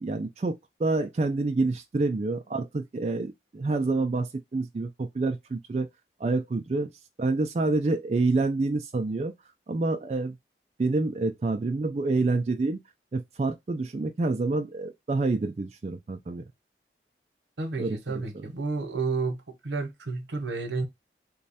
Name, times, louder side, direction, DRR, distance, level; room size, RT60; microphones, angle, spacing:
voice 1, 0.0-5.9 6.2-6.9 7.2-9.3 9.7-10.4 10.8-12.8 13.1-16.4 17.8-18.5, right 3 dB, 35° right, 0.3 m, -27 dB
voice 2, 17.6-19.4 19.6-20.9, right 3 dB, 85° right, 0.8 m, -31 dB
3.1 x 2.2 x 4.0 m
head